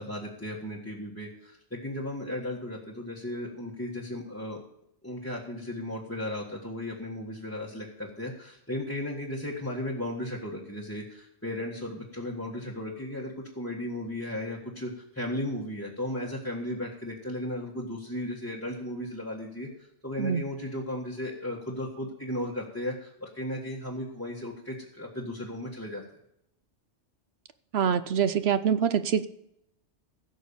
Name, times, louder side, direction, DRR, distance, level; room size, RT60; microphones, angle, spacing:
voice 1, 0.0-4.6 5.0-19.7 20.0-26.0, left 1 dB, 10° left, -4 dB, 1.6 m, -35 dB
voice 2, 27.7-29.3, right 8 dB, 65° right, 12 dB, 0.9 m, -25 dB
16.0 x 6.6 x 7.0 m, 0.76 s
omnidirectional pair, 1.2 m